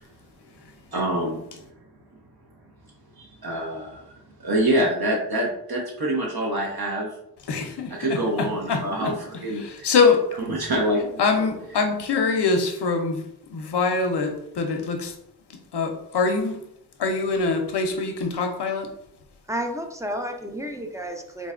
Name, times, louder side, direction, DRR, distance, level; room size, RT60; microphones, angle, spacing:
voice 1, 0.9-1.4 3.2-4.1 4.4-7.1 8.0-9.9 10.4-11.2, right 1 dB, 65° right, -2 dB, 0.7 m, -25 dB
voice 2, 7.5-8.8 9.6-10.2 11.2-13.2 13.5-15.1 15.7-16.6 17.0-18.9, left 4 dB, 80° left, 4 dB, 0.5 m, -23 dB
voice 3, 19.5-21.5, equal, 10° right, 3 dB, 0.4 m, -31 dB
3.8 x 2.1 x 2.4 m, 0.77 s
wide cardioid pair, 50°, 40 cm